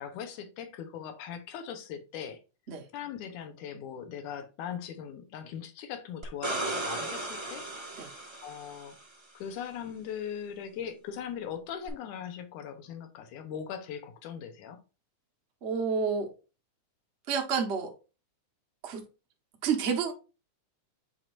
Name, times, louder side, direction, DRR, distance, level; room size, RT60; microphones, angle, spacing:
voice 1, 0.0-2.4 2.9-7.7 8.4-9.0 9.3-14.8, left 8 dB, 85° left, 2.5 m, -40 dB
sound 1, 6.2-9.0 11.9-12.0, right 2 dB, 20° right, 0.7 m, -36 dB
voice 2, 15.6-16.3 17.3-17.9 18.8-19.0 19.6-20.1, right 6 dB, 65° right, 0.6 m, -29 dB
7.5 x 4.8 x 2.6 m
omnidirectional pair, 3.5 m